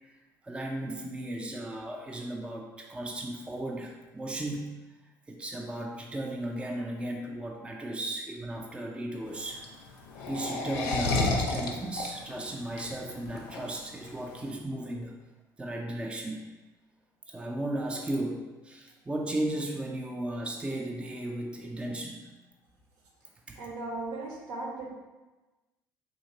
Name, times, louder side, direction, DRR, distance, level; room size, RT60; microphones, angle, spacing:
voice 1, 0.4-4.7 5.3-9.7 10.3-15.1 15.6-16.5 17.3-22.3 23.5-23.6, right 1 dB, 10° right, 1 dB, 0.4 m, -35 dB
sound 1, 9.3-14.4, left 2 dB, 60° left, 0.5 m, -31 dB
voice 2, 23.6-24.9, right 2 dB, 65° right, -1 dB, 0.8 m, -37 dB
3.7 x 2.8 x 2.7 m, 1.2 s
figure-of-eight pair, 55°, 11 cm